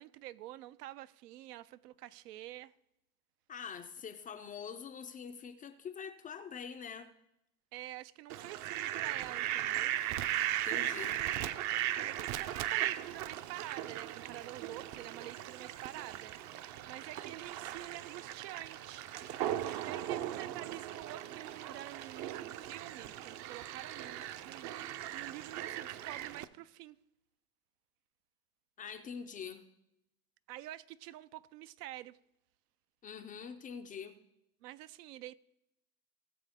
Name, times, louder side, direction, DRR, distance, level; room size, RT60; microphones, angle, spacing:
voice 1, 0.0-2.7 7.7-9.9 12.1-16.3 16.6-19.1 19.8-27.0 30.5-32.2 34.6-35.3, right 15 dB, 80° right, 0.6 m, -48 dB
voice 2, 3.5-7.1 10.6-11.2 28.8-29.6 33.0-34.2, left 7 dB, 20° left, 0.3 m, -45 dB
Fowl, 8.3-26.4, right 12 dB, 40° right, 0.5 m, -38 dB
18.5 x 7.3 x 3.5 m
supercardioid pair, 115°, 46 cm